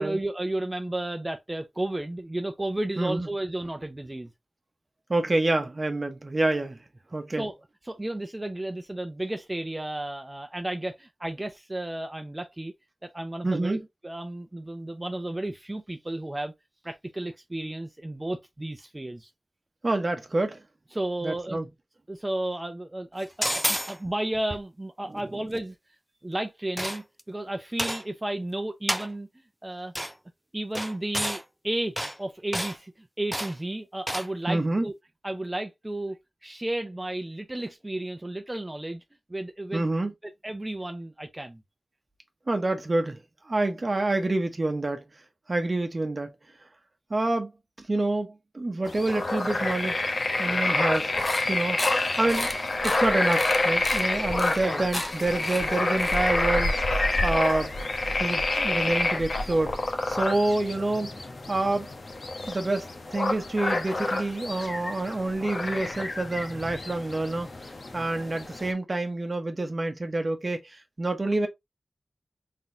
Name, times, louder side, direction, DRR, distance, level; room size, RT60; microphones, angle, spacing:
voice 1, 0.0-4.3 7.4-7.6 7.8-12.7 13.0-13.8 14.0-16.5 16.8-19.3 20.9-21.6 22.1-25.7 26.2-29.3 29.6-29.9 30.5-34.9 35.2-39.0 39.3-39.8 40.4-41.6 51.9-52.4 54.6-54.9, right 1 dB, 25° right, 0.7 m, -33 dB
voice 2, 3.0-3.3 5.1-6.8 7.1-7.4 13.4-13.8 19.8-20.6 21.2-21.7 25.1-25.2 34.5-34.9 39.7-40.1 42.5-43.2 43.4-45.0 45.5-46.3 47.1-47.5 47.8-49.9 50.4-51.1 51.5-52.5 52.8-56.7 57.2-57.7 58.2-59.8 60.1-61.9 62.5-67.5 67.9-71.5, right 2 dB, 45° right, 1.0 m, -27 dB
sound 1, 23.4-24.0 26.8-27.2 27.8-28.0 28.9-29.1 29.9-30.1 30.7-31.4 32.0-32.2 32.5-32.8 33.3-33.5 34.1-34.3, equal, 5° right, 0.3 m, -29 dB
sound 2, 48.8-68.7, left 2 dB, 65° left, 1.1 m, -28 dB
sound 3, 50.9-56.7, left 1 dB, 25° left, 0.7 m, -35 dB
4.0 x 3.7 x 2.6 m
wide cardioid pair, 60°, 0 cm